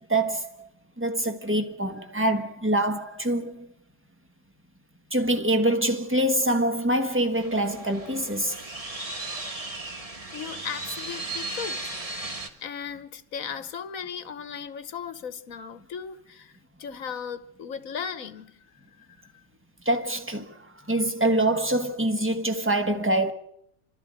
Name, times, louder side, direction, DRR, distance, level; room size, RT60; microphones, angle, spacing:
voice 1, 0.1-0.7 1.0-3.7 5.1-8.6 19.8-23.3, right 1 dB, 10° right, 1.4 m, -25 dB
sound 1, 7.3-12.5, right 2 dB, 25° right, 1.6 m, -36 dB
voice 2, 10.3-11.9 12.6-16.5 16.8-18.5 19.0-19.1, left 7 dB, 70° left, 1.5 m, -36 dB
30.0 x 13.0 x 7.6 m
omnidirectional pair, 1.5 m